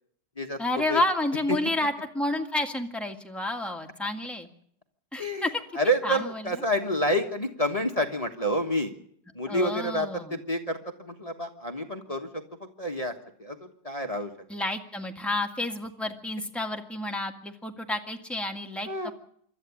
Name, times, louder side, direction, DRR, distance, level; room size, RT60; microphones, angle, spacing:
voice 1, 0.6-4.5 5.1-5.5 6.0-6.6 9.5-10.4 14.5-19.1, left 1 dB, ahead, 3 dB, 1.6 m, -30 dB
voice 2, 5.2-5.5 5.8-8.9 9.3-13.1 13.4-14.3 18.9-19.1, equal, 20° left, 4 dB, 1.4 m, -29 dB
26.5 x 12.5 x 8.5 m, 0.66 s
omnidirectional pair, 2.0 m